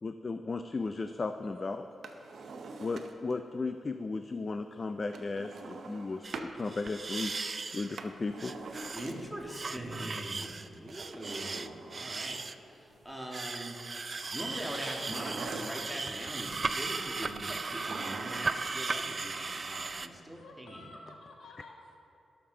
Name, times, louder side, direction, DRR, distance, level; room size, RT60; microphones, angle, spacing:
voice 1, 0.0-1.8 2.8-7.3 7.7-8.5, left 3 dB, 40° left, 8 dB, 0.4 m, -35 dB
voice 2, 1.4-2.0 12.1-13.0 20.3-22.0, left 2 dB, 85° left, 0 dB, 1.6 m, -54 dB
Drawer open or close, 1.9-3.4 5.1-6.6 7.7-9.5 10.8-12.4 14.9-16.1 17.5-18.7 18.9-19.0, right 3 dB, 70° right, 0.8 m, -44 dB
sound 1, 6.2-6.4 6.7-8.0 8.4-9.1 9.4-12.5 13.3-20.1, right 4 dB, 40° right, 0.4 m, -37 dB
voice 3, 8.9-12.4 12.7-13.8 14.2-20.9, right 1 dB, 5° right, -1 dB, 1.6 m, -42 dB
18.0 x 6.7 x 3.8 m, 2.7 s
cardioid pair, 90°, 0 cm